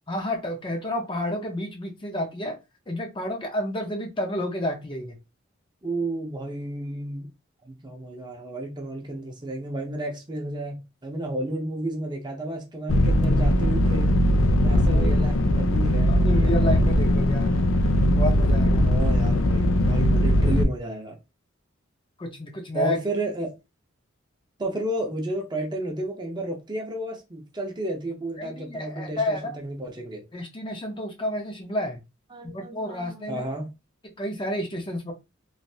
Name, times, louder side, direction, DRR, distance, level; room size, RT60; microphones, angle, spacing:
voice 1, 0.1-2.5 2.9-5.1 14.9-15.1 16.1-17.5 18.1-19.0 22.2-23.0 28.4-29.6 30.3-32.0 32.4-33.4 34.0-35.1, left 1 dB, 25° left, 0.6 m, -30 dB
voice 2, 5.8-7.3 7.7-14.2 14.6-17.0 18.8-21.2 22.7-23.5 24.6-30.2 32.3-33.7, right 1 dB, 20° right, 0.7 m, -32 dB
sound 1, 12.9-20.6, left 1 dB, 80° left, 0.5 m, -20 dB
3.2 x 2.5 x 2.7 m
head